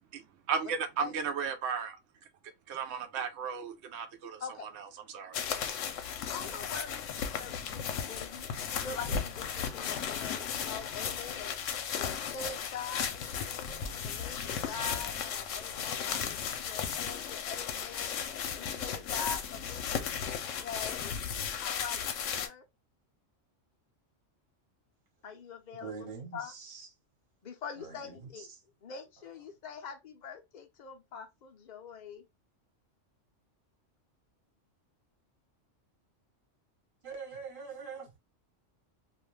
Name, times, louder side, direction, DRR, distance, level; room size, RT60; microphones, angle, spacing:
voice 1, 0.5-2.0 2.7-5.4, right 6 dB, 70° right, 0.8 m, -35 dB
sound 1, 5.3-22.5, left 7 dB, 80° left, 0.9 m, -35 dB
voice 2, 6.3-8.5 8.8-11.5 12.0-18.2 18.6-20.1 20.5-21.1 21.6-22.6 25.2-25.9 26.3-26.5 27.4-28.5 28.8-32.2, left 5 dB, 55° left, 0.5 m, -44 dB
voice 3, 25.7-26.9 27.8-28.6 37.0-38.2, right 5 dB, 45° right, 1.1 m, -44 dB
2.4 x 2.2 x 3.1 m
omnidirectional pair, 1.3 m